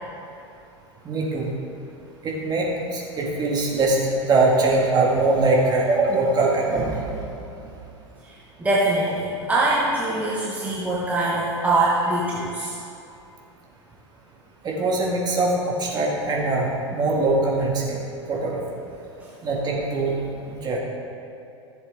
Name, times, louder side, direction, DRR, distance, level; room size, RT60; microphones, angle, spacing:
voice 1, 1.0-1.5 2.2-7.0 14.6-18.0 18.3-18.6 19.4-20.2 20.5-20.8, right 2 dB, 25° right, -2 dB, 2.2 m, -22 dB
voice 2, 8.3-12.7 19.2-19.3, right 2 dB, 10° right, -7 dB, 1.4 m, -23 dB
14.5 x 7.4 x 3.8 m, 2.7 s
figure-of-eight pair, 85°, 15 cm